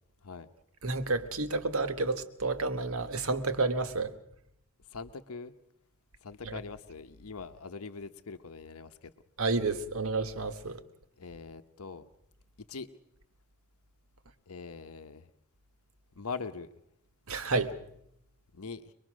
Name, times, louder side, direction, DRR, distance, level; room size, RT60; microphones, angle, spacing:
voice 1, 0.8-4.1 6.4-6.6 9.4-10.8 17.3-17.7, right 3 dB, 75° right, 1.5 m, -30 dB
voice 2, 4.9-5.5 6.2-9.1 11.2-12.1 12.7-12.9 14.5-15.3 16.2-16.7 18.5-18.9, left 4 dB, 90° left, 0.9 m, -42 dB
24.5 x 21.5 x 6.3 m
head